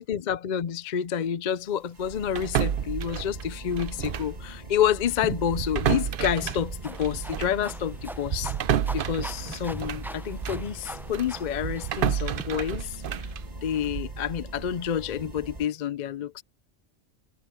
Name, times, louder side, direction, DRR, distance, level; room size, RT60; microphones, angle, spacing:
voice 1, 0.0-8.5 8.9-13.0 13.6-16.4, left 9 dB, 50° left, 0.6 m, -29 dB
sound 1, 1.9-15.7, right 2 dB, 35° right, 2.2 m, -41 dB
sound 2, 2.4-4.4 4.7-4.9 5.4-10.7 11.1-14.2, right 9 dB, 55° right, 0.8 m, -30 dB
sound 3, 5.2-12.4, equal, 5° right, 0.5 m, -42 dB
omnidirectional pair, 1.2 m